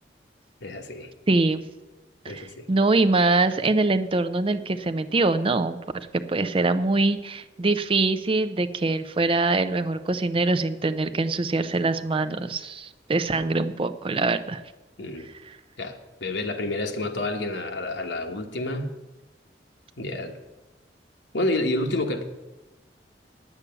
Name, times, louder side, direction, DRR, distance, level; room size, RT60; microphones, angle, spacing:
voice 1, 0.6-1.1 2.3-2.6 15.0-15.3 15.8-18.9 20.0-20.3 21.3-22.2, left 2 dB, 85° left, 5 dB, 1.2 m, -29 dB
voice 2, 1.3-1.6 2.2-5.8 6.3-14.6, right 3 dB, 30° right, 9 dB, 0.5 m, -23 dB
9.8 x 8.4 x 6.8 m, 1.1 s
head